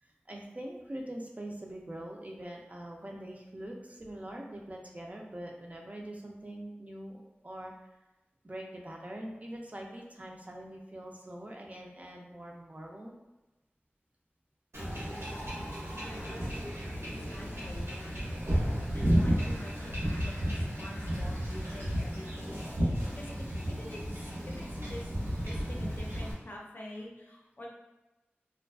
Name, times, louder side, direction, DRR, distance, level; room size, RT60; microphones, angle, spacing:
voice 1, 0.0-7.9 8.4-13.1, right 1 dB, 35° right, 0 dB, 0.4 m, -43 dB
Wind / Ocean / Boat Water vehicle, 14.7-26.3, equal, 90° right, 1.0 m, -33 dB
voice 2, 16.0-18.1 18.9-27.7, left 1 dB, 55° left, -2 dB, 0.5 m, -47 dB
2.4 x 2.3 x 2.3 m, 1.1 s
wide cardioid pair, 60°, 4 cm